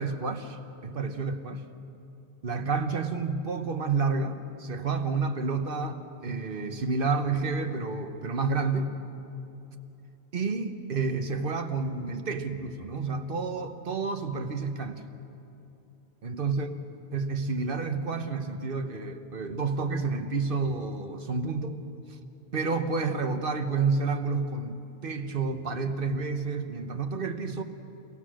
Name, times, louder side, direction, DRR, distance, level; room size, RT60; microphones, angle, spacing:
voice 1, 0.0-1.6 2.4-8.9 10.3-15.0 16.2-16.7 17.1-21.8 22.1-22.2 22.5-27.6, right 4 dB, 55° right, 7 dB, 1.3 m, -30 dB
29.5 x 17.0 x 6.3 m, 2.8 s
omnidirectional pair, 1.1 m